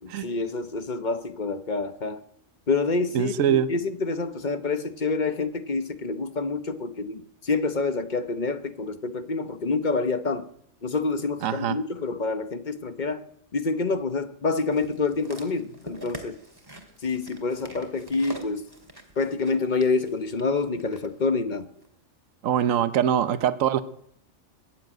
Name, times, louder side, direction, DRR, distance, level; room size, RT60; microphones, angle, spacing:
voice 1, 0.0-2.2 2.7-10.5 10.8-13.2 13.5-16.4 17.0-18.7 19.2-21.7, left 3 dB, 40° left, 1.0 m, -27 dB
voice 2, 3.1-3.7 11.4-11.8 22.4-23.8, right 9 dB, 75° right, 1.2 m, -23 dB
sound 1, 14.7-21.1 21.8-21.9, right 1 dB, 15° right, 2.1 m, -45 dB
21.5 x 7.5 x 9.0 m
omnidirectional pair, 1.4 m